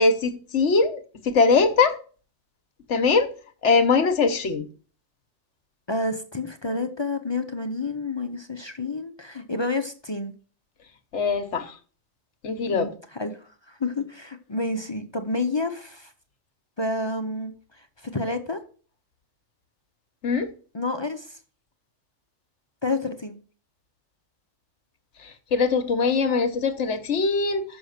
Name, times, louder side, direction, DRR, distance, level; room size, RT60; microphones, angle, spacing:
voice 1, 0.0-2.0 2.9-3.3 3.6-4.7 11.1-11.7 12.4-12.9 20.2-20.5 25.2-27.6, left 4 dB, 65° left, 1.2 m, -22 dB
voice 2, 5.9-10.3 12.7-13.4 13.7-16.1 16.8-17.5 18.1-18.6 20.7-21.4 22.8-23.4, left 2 dB, 35° left, 0.5 m, -29 dB
7.0 x 5.3 x 6.4 m
omnidirectional pair, 1.3 m